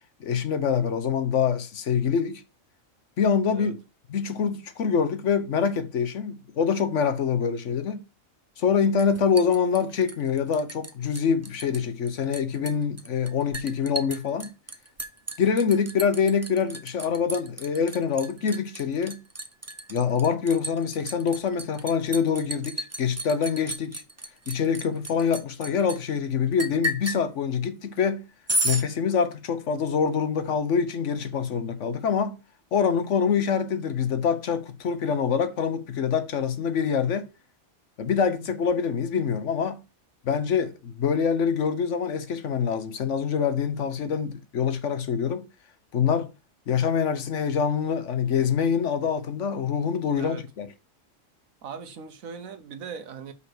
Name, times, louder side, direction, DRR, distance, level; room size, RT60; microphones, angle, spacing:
voice 1, 0.2-2.4 3.2-3.8 4.1-8.0 8.6-14.5 15.4-19.2 19.9-24.0 24.5-28.2 28.6-32.4 32.7-37.3 38.0-39.8 40.2-45.5 45.9-46.3 46.7-50.7, left 6 dB, 65° left, 1.2 m, -25 dB
Liquid, 9.0-10.9 11.2-11.8 12.1-26.0 26.6-27.2 28.5-28.8, right 1 dB, 20° right, 0.5 m, -33 dB
voice 2, 50.1-50.4 51.6-53.3, right 6 dB, 85° right, 1.4 m, -39 dB
5.7 x 4.9 x 6.2 m
omnidirectional pair, 1.4 m